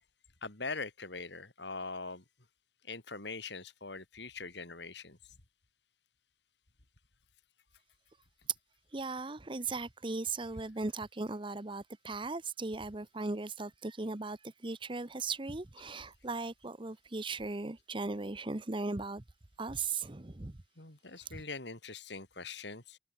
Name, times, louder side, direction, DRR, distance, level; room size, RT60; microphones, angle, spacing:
voice 1, 0.4-2.2 2.9-5.2 20.8-23.0, left 4 dB, 65° left, 3.4 m, -42 dB
voice 2, 8.9-14.4 14.6-19.2 19.6-20.6 21.3-21.4, right 3 dB, 25° right, 0.9 m, -38 dB
head